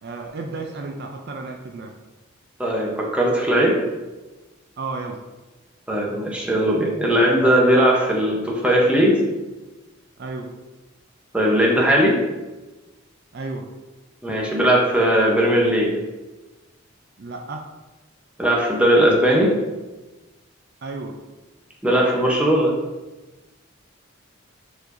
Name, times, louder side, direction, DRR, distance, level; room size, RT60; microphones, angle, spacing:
voice 1, 0.0-1.9 4.8-5.2 10.2-10.5 13.3-13.7 17.2-17.6 20.8-21.2, right 3 dB, 50° right, 2 dB, 0.4 m, -32 dB
voice 2, 2.6-3.8 5.9-9.2 11.3-12.1 14.2-15.9 18.4-19.5 21.8-22.7, equal, 5° right, -3 dB, 0.8 m, -18 dB
4.6 x 4.4 x 2.6 m, 1.1 s
head